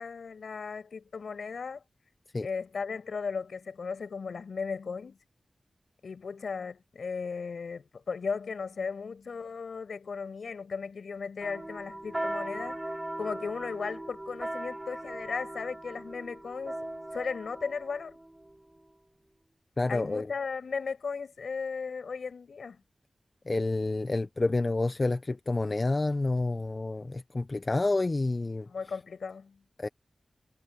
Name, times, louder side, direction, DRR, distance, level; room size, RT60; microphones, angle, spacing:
voice 1, 0.0-1.8 2.4-5.2 6.0-12.8 13.2-16.8 17.1-18.2 19.9-22.8 28.6-29.6, left 5 dB, 85° left, 5.5 m, -36 dB
sound 1, 11.4-18.9, right 1 dB, 15° right, 3.0 m, -39 dB
voice 2, 19.8-20.3 23.5-28.7 29.8-29.9, left 2 dB, 35° left, 0.7 m, -29 dB
wide cardioid pair, 100°, 0 cm